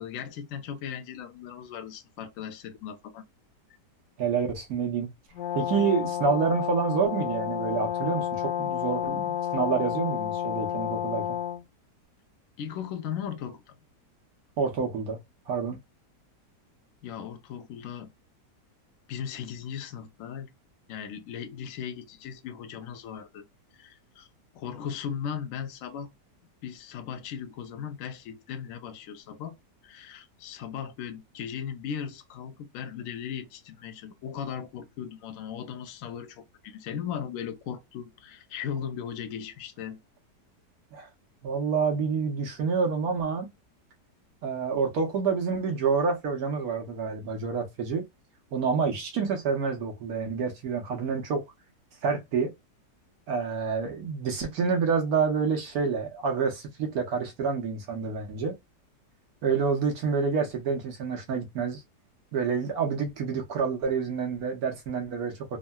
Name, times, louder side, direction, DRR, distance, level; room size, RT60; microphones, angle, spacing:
voice 1, 0.0-3.2 12.6-13.7 17.0-18.1 19.1-20.5 20.9-23.4 23.8-24.3 24.5-26.1 26.6-29.5 29.8-40.0, left 8 dB, 65° left, 0.9 m, -37 dB
voice 2, 4.2-5.1 5.5-11.4 14.6-15.2 15.5-15.8 40.9-41.1 41.4-43.5 44.4-48.0 48.5-51.4 52.0-52.5 53.3-58.5 59.4-61.8 62.3-65.6, right 5 dB, 65° right, 1.2 m, -28 dB
Brass instrument, 5.4-11.6, left 10 dB, 85° left, 1.2 m, -30 dB
3.6 x 2.1 x 2.2 m
omnidirectional pair, 1.9 m